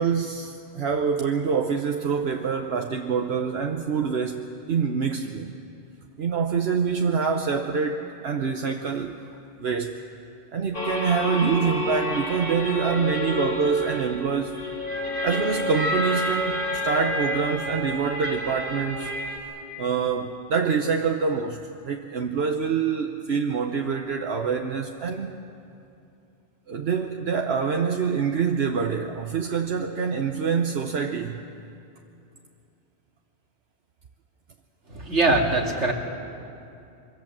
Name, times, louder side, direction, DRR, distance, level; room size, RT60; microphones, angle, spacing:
voice 1, 0.0-5.5 6.2-9.1 9.6-10.0 10.5-14.6 15.2-19.1 19.8-21.6 21.8-25.3 26.7-31.4, right 6 dB, 65° right, 4 dB, 1.2 m, -26 dB
sound 1, 10.7-19.4, left 1 dB, 50° left, 4.1 m, -29 dB
voice 2, 34.9-35.9, right 2 dB, 90° right, 1 dB, 2.7 m, -22 dB
25.0 x 24.0 x 7.5 m, 2.7 s
omnidirectional pair, 1.1 m